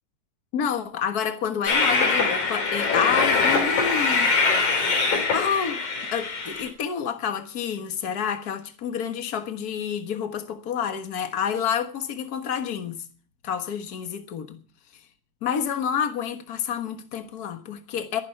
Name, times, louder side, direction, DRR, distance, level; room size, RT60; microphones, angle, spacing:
voice 1, 0.5-4.3 5.3-13.0 13.4-14.6 15.4-18.2, left 7 dB, 45° left, 1.4 m, -29 dB
Train, 1.7-6.7, left 4 dB, 85° left, 4.9 m, -23 dB
22.0 x 10.5 x 4.5 m
omnidirectional pair, 3.3 m